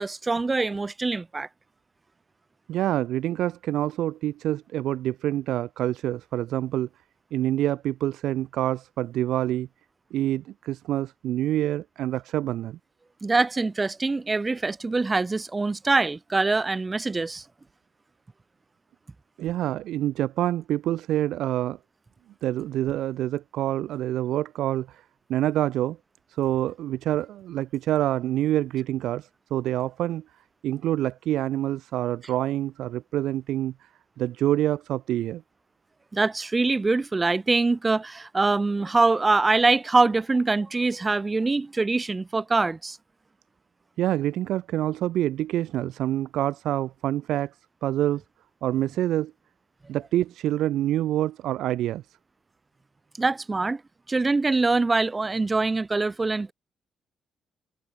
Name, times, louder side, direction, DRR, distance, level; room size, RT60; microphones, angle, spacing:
voice 1, 0.0-1.5 13.2-17.4 36.1-43.0 53.2-53.8 54.1-56.5, right 3 dB, 25° right, 7.1 m, -24 dB
voice 2, 2.7-6.9 7.3-9.7 10.1-12.8 19.4-21.8 22.4-25.0 25.3-26.0 26.3-30.2 30.6-33.7 34.2-35.4 44.0-47.6 47.8-48.2 48.6-49.3 49.9-52.0, right 13 dB, 80° right, 2.7 m, -26 dB
cardioid pair, 90°, 0 cm